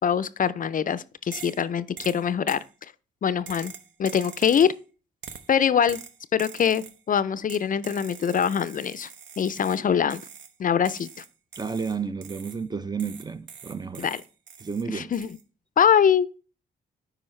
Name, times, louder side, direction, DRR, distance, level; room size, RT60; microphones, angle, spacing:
voice 1, 0.0-2.6 3.2-3.7 4.0-4.7 5.5-6.0 6.3-9.1 9.4-10.2 10.6-11.2 14.0-14.2 14.9-15.3 15.8-16.3, left 8 dB, 40° left, 0.4 m, -23 dB
sound 1, 1.3-1.6 2.0-2.7 3.5-4.8 5.2-5.5 5.9-7.0 7.5-9.8 10.1-10.5 10.9-12.6 13.0-14.8 15.1-15.4, right 7 dB, 65° right, 0.8 m, -44 dB
voice 2, 11.6-14.1 14.6-15.1, right 5 dB, 20° right, 0.4 m, -31 dB
8.6 x 4.9 x 3.1 m
supercardioid pair, 60°, 21 cm